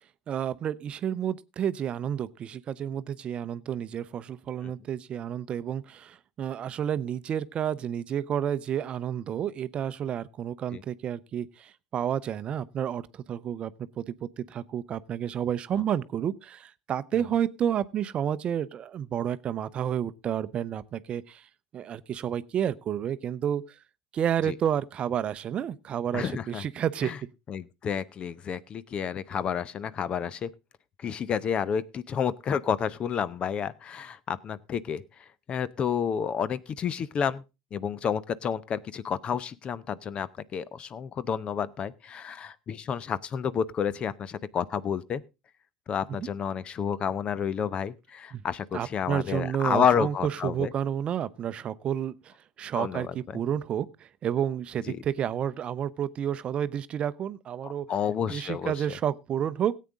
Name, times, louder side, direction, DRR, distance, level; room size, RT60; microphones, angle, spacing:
voice 1, 0.3-13.7 14.0-21.5 21.7-23.6 24.1-27.3 46.2-46.3 48.3-48.4 48.7-57.9 58.3-59.7, right 9 dB, 40° right, 0.6 m, -30 dB
voice 2, 26.1-26.6 27.0-27.2 27.5-30.5 31.0-35.0 35.5-37.4 37.7-45.2 45.9-50.7 52.7-53.1 54.9-55.0 57.6-58.7, left 7 dB, 35° left, 0.7 m, -30 dB
17.5 x 8.5 x 3.7 m
hypercardioid pair, 75°, 3 cm